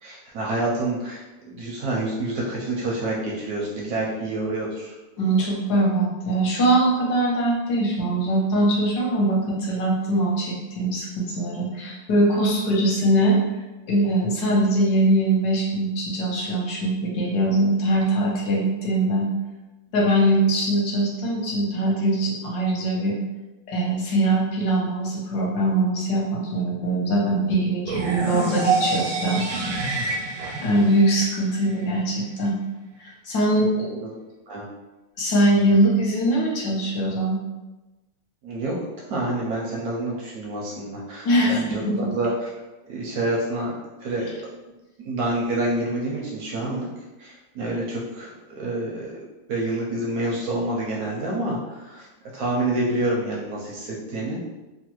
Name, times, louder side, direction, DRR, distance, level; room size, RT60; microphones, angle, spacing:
voice 1, 0.0-4.9 34.0-34.2 34.5-34.6 38.4-38.8 39.1-41.8 42.1-42.5 42.9-43.7 44.0-44.3 45.0-46.9 47.2-49.1 49.5-52.1 52.3-54.4, right 2 dB, 75° right, -3 dB, 0.9 m, -27 dB
voice 2, 5.2-13.4 13.9-19.3 19.9-23.2 23.7-29.4 30.6-32.6 33.0-34.0 35.2-37.4 41.2-42.1, right 1 dB, 65° left, -3 dB, 1.2 m, -22 dB
sound 1, 27.8-31.8, right 3 dB, 90° right, 1.3 m, -27 dB
3.1 x 2.2 x 2.9 m, 1.1 s
omnidirectional pair, 2.0 m